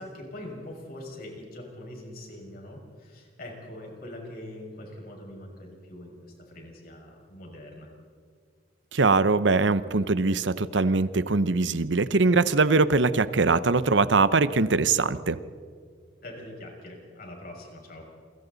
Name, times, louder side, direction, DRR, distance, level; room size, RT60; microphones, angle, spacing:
voice 1, 0.0-7.9 16.2-18.1, left 1 dB, 55° left, 0 dB, 6.1 m, -43 dB
voice 2, 8.9-15.4, right 3 dB, 75° right, 14 dB, 0.8 m, -22 dB
29.0 x 23.5 x 4.1 m, 2.1 s
head